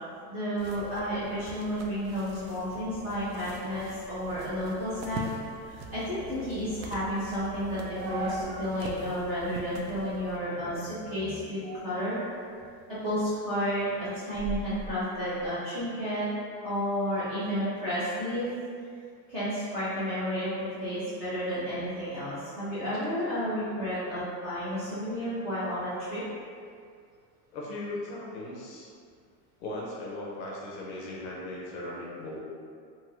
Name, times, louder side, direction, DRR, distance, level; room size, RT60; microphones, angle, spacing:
voice 1, 0.3-5.2 5.7-12.2 12.9-16.3 16.6-18.5 19.3-20.5 20.8-26.2, equal, 25° right, -13 dB, 0.3 m, -31 dB
sound 1, 0.6-10.4, right 2 dB, 90° right, 0.5 m, -44 dB
sound 2, 4.3-8.8 9.2-9.3 9.9-10.3 10.6-12.7 13.1-15.5, right 2 dB, 45° right, 0.8 m, -42 dB
voice 2, 27.5-28.9 29.6-32.4, left 1 dB, 45° left, -4 dB, 0.4 m, -38 dB
2.7 x 2.3 x 2.9 m, 2.3 s
supercardioid pair, 170°, 49 cm